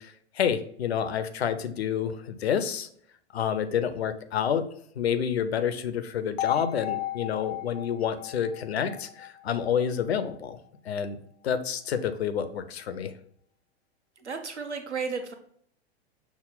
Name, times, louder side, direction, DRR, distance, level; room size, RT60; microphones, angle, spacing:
voice 1, 0.0-2.9 3.3-4.6 5.0-10.6 10.8-11.2 11.4-13.1, left 8 dB, 70° left, 10 dB, 0.6 m, -29 dB
sound 1, 6.4-10.4, left 14 dB, 20° left, 0.3 m, -35 dB
voice 2, 14.2-15.3, right 5 dB, 85° right, 6 dB, 0.7 m, -33 dB
5.8 x 2.0 x 3.8 m, 0.63 s
figure-of-eight pair, 95°, 33 cm